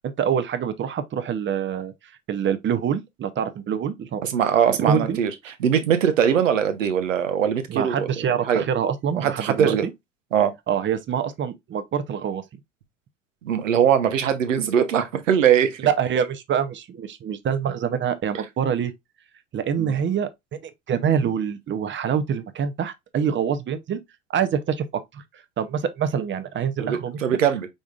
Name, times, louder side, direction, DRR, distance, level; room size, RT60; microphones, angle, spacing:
voice 1, 0.0-1.9 2.3-4.2 4.8-5.2 7.7-9.8 10.7-12.4 15.8-18.9 19.5-24.0 24.3-25.2 25.6-27.4, right 8 dB, 30° right, 0.7 m, -25 dB
voice 2, 4.2-5.3 5.6-8.1 8.5-8.6 9.1-9.9 10.3-10.5 13.4-15.8 19.8-20.0 26.8-27.7, right 8 dB, 80° right, 0.8 m, -21 dB
5.2 x 3.6 x 2.4 m
figure-of-eight pair, 65°, 38 cm